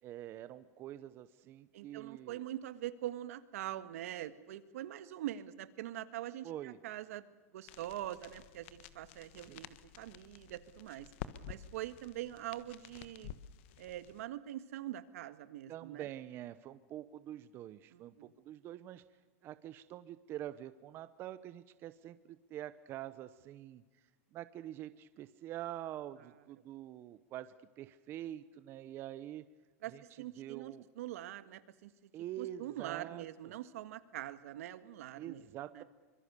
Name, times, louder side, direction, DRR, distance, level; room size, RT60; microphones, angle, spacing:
voice 1, 0.0-2.4 6.4-6.8 9.4-9.6 15.7-29.4 29.9-30.0 30.4-30.9 32.1-33.5 35.2-35.8, right 12 dB, 30° right, 13 dB, 0.7 m, -46 dB
voice 2, 1.7-11.1 11.5-13.3 13.8-16.1 17.9-18.3 29.8-32.1 32.4-35.5 35.7-35.8, right 13 dB, 70° right, 13 dB, 1.6 m, -44 dB
sound 1, 7.7-14.2, left 11 dB, 55° left, 1.3 m, -51 dB
25.0 x 22.5 x 6.9 m, 1.3 s
supercardioid pair, 160°, 8 cm